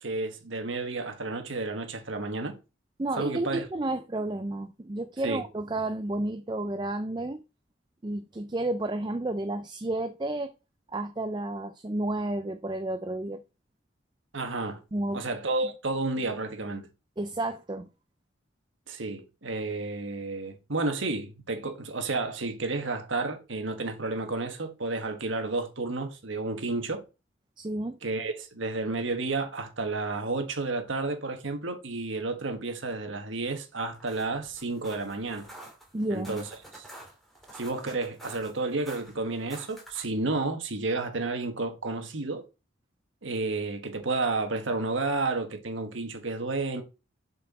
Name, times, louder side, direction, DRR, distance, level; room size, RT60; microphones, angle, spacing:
voice 1, 0.0-2.6 3.2-3.7 5.2-5.4 14.3-14.8 15.1-16.9 18.9-27.0 28.0-35.5 36.1-36.5 36.7-36.9 37.5-42.4 43.2-46.8, right 3 dB, 75° right, 1.4 m, -31 dB
voice 2, 3.0-7.4 8.0-10.5 10.9-13.4 14.9-15.3 17.2-17.9 27.6-28.0 35.9-36.4, right 2 dB, 20° right, 0.4 m, -31 dB
sound 1, 33.8-40.2, right 1 dB, ahead, 2.2 m, -49 dB
6.9 x 4.5 x 4.2 m
head